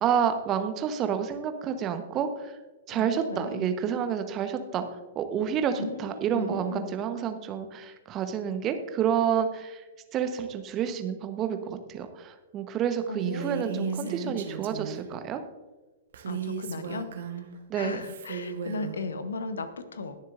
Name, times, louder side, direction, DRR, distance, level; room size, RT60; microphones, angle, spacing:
voice 1, 0.0-2.5 2.9-4.8 5.1-9.8 10.1-15.4 17.7-18.0, right 8 dB, 30° right, 8 dB, 1.0 m, -29 dB
voice 2, 2.9-3.7 5.8-7.0 13.1-14.4 16.3-17.1 17.7-20.2, left 3 dB, 70° left, 12 dB, 0.9 m, -36 dB
Female speech woman speaking, 13.2-15.1 16.1-17.5 18.0-19.0, right 8 dB, 60° right, 1.2 m, -36 dB
20.0 x 7.2 x 2.5 m, 1.2 s
figure-of-eight pair, 110°, 0 cm